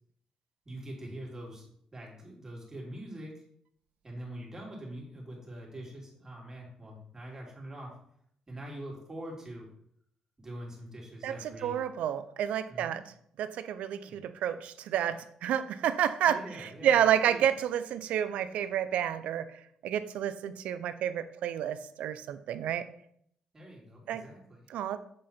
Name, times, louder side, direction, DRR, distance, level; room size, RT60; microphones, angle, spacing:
voice 1, 0.6-3.4 4.0-7.9 8.5-9.7 10.4-11.8 12.7-13.0 14.0-14.2 16.2-17.4 23.5-24.7, right 1 dB, 25° right, -2 dB, 2.5 m, -44 dB
voice 2, 11.6-13.0 13.4-19.5 19.8-22.9 24.1-24.2 24.7-25.0, right 10 dB, 80° right, 12 dB, 0.5 m, -30 dB
7.8 x 3.7 x 4.3 m, 0.68 s
cardioid pair, 95°, 2 cm